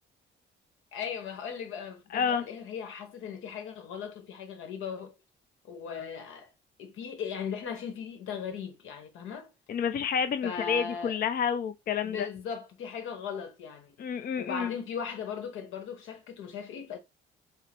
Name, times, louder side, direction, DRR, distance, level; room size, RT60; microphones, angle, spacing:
voice 1, 0.9-5.1 5.6-6.5 6.8-9.5 10.4-11.2 12.0-14.0 14.4-17.0, left 7 dB, 85° left, 1.2 m, -38 dB
voice 2, 2.1-2.5 9.7-12.3 14.0-14.7, left 7 dB, 50° left, 0.5 m, -29 dB
5.6 x 2.0 x 4.4 m
cardioid pair, 90°, 20 cm